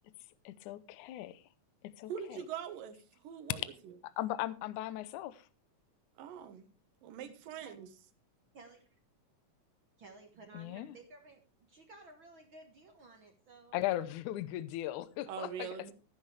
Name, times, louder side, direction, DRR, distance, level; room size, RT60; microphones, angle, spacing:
voice 1, 0.5-1.4 1.8-2.4 4.2-5.5 10.5-10.9 13.7-15.7, left 14 dB, 75° left, 2.1 m, -38 dB
voice 2, 2.1-3.9 6.2-6.7 7.0-7.9 15.3-15.9, right 8 dB, 85° right, 2.9 m, -43 dB
voice 3, 7.2-7.8 8.5-9.0 10.0-14.0, right 3 dB, 55° right, 1.5 m, -56 dB
14.5 x 9.8 x 3.2 m
omnidirectional pair, 3.9 m